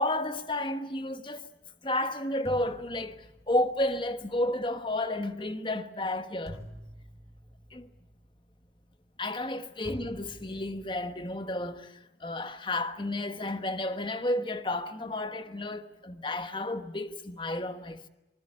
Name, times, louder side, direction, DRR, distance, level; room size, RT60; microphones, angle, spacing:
voice 1, 0.0-1.4 1.8-3.2 3.5-6.6 7.7-7.9 9.2-11.9 12.2-18.1, left 1 dB, 30° left, 1.2 m, -31 dB
sound 1, 1.9-2.0 2.5-9.6 9.8-11.9, equal, 15° right, 1.7 m, -49 dB
26.5 x 20.5 x 8.7 m
head